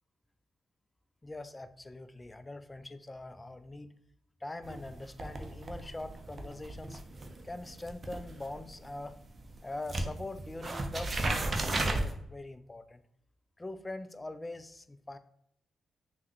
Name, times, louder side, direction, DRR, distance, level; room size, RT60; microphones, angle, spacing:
voice 1, 1.2-3.9 4.4-7.0 7.4-9.1 9.6-13.0 13.6-15.2, left 2 dB, 25° left, 11 dB, 0.3 m, -43 dB
sound 1, 4.6-9.6 9.9-12.1, right 2 dB, 45° right, 0.5 m, -35 dB
3.4 x 2.1 x 2.8 m, 0.76 s
supercardioid pair, 45°, 0 cm